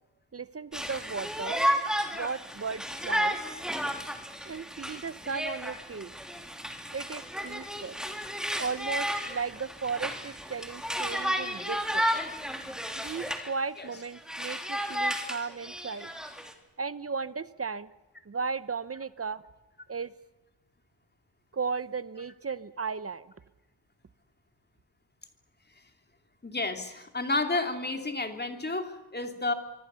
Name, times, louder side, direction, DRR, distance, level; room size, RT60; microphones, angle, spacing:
voice 1, 0.3-1.6 2.1-3.4 4.4-6.1 6.9-8.0 8.6-12.1 13.0-16.1 16.8-17.9 18.3-19.4 19.9-20.1 21.5-23.3, right 5 dB, 35° right, 16 dB, 0.8 m, -35 dB
Conversation, 0.7-13.5 13.9-16.5, equal, ahead, 3.1 m, -33 dB
voice 2, 26.4-29.5, left 2 dB, 25° left, 5 dB, 3.0 m, -31 dB
25.5 x 24.5 x 7.0 m, 1.0 s
wide cardioid pair, 120°, 43 cm